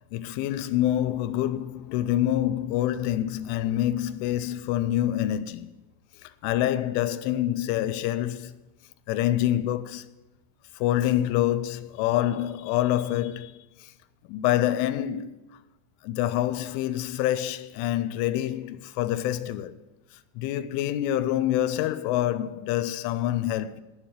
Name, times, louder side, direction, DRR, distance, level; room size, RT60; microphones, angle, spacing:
voice 1, 0.1-5.7 6.4-8.6 9.1-10.1 10.8-13.6 14.3-15.4 16.0-19.7 20.4-23.8, left 13 dB, 90° left, 3.1 m, -26 dB
9.5 x 7.3 x 8.9 m
omnidirectional pair, 5.5 m